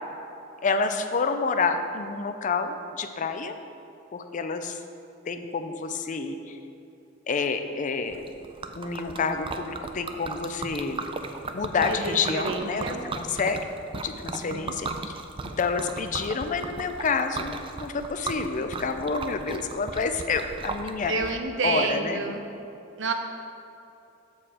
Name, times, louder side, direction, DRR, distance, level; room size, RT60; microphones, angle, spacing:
voice 1, 0.6-3.6 4.1-4.8 5.3-6.6 7.3-8.2 8.8-11.0 11.5-13.6 13.9-15.1 15.4-21.1 21.6-22.2, left 4 dB, 40° left, 8 dB, 0.5 m, -28 dB
Liquid, 8.1-21.3, right 3 dB, 25° right, 0.4 m, -36 dB
voice 2, 11.9-13.0 14.5-14.8 21.1-22.4 23.0-23.1, right 3 dB, 70° right, 5 dB, 0.7 m, -29 dB
7.3 x 4.3 x 6.6 m, 2.8 s
head